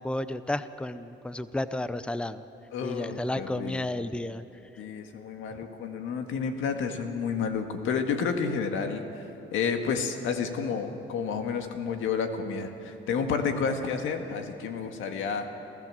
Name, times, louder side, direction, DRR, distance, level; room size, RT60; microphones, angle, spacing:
voice 1, 0.0-2.4 2.8-4.4 4.7-4.8 5.5-5.6, left 1 dB, 5° left, 13 dB, 0.7 m, -32 dB
voice 2, 2.7-3.9 4.8-9.2 9.5-15.5, left 6 dB, 85° left, 5 dB, 1.9 m, -30 dB
28.0 x 15.0 x 7.7 m, 2.9 s
cardioid pair, 90°, 20 cm